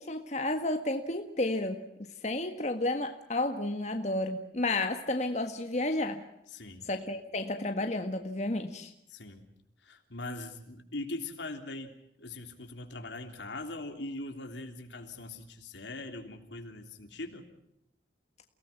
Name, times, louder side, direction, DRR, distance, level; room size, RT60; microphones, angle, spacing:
voice 1, 0.0-1.8 2.2-6.2 6.8-8.9, left 2 dB, 40° left, 5 dB, 1.6 m, -31 dB
voice 2, 6.5-6.9 9.1-9.4 9.8-17.5, left 2 dB, 85° left, 5 dB, 3.4 m, -41 dB
29.5 x 18.5 x 6.0 m, 0.79 s
head